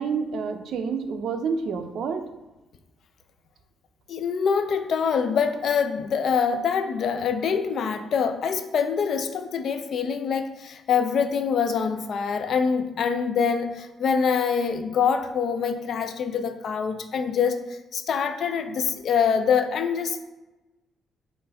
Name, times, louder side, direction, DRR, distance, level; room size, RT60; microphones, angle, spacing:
voice 1, 0.0-2.3, right 5 dB, 70° right, 7 dB, 0.4 m, -28 dB
voice 2, 4.1-17.6 17.9-20.2, left 6 dB, 60° left, 8 dB, 0.4 m, -25 dB
5.1 x 2.5 x 3.4 m, 1.1 s
cardioid pair, 90°, 0 cm